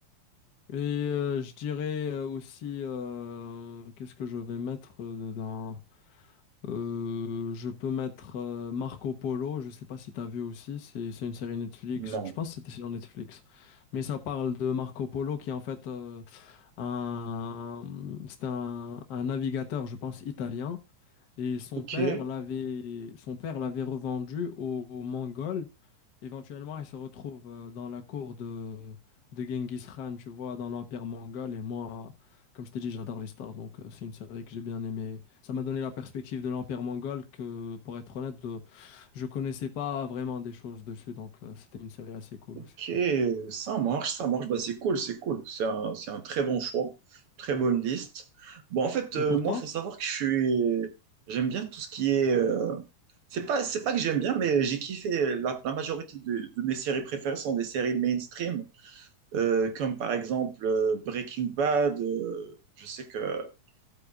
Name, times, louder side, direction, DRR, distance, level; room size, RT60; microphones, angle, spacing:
voice 1, 0.7-5.8 6.1-6.3 6.6-20.8 21.4-25.7 26.2-29.0 29.3-32.1 32.5-42.7 49.2-49.6, left 6 dB, 55° left, 1.2 m, -35 dB
voice 2, 12.0-12.3 21.9-22.2 42.6-46.9 47.4-50.9 51.3-52.8 53.3-63.5, right 6 dB, 60° right, 1.7 m, -29 dB
14.5 x 8.2 x 2.4 m
omnidirectional pair, 3.5 m